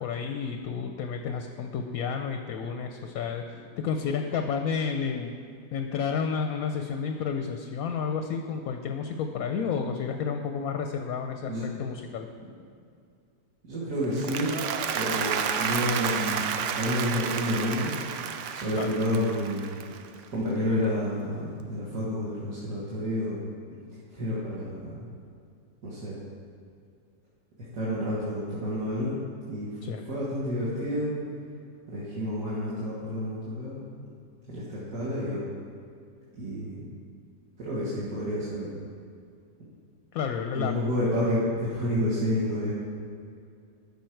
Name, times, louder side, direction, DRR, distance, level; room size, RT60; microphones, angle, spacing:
voice 1, 0.0-3.4 3.8-5.3 5.7-12.3 18.7-18.9 29.8-30.0 40.1-40.7, left 6 dB, 70° left, 5 dB, 0.9 m, -31 dB
voice 2, 13.6-14.5 14.9-17.9 18.5-19.6 20.3-23.4 24.1-25.0 25.8-26.2 27.7-29.2 29.5-29.7 30.1-31.2 31.9-33.8 34.5-35.4 36.4-36.9 37.6-38.8 40.5-42.7, equal, 50° right, -9 dB, 1.9 m, -29 dB
Applause, 14.0-20.4, right 7 dB, 75° right, 0.6 m, -31 dB
12.5 x 5.3 x 4.5 m, 2.4 s
omnidirectional pair, 1.8 m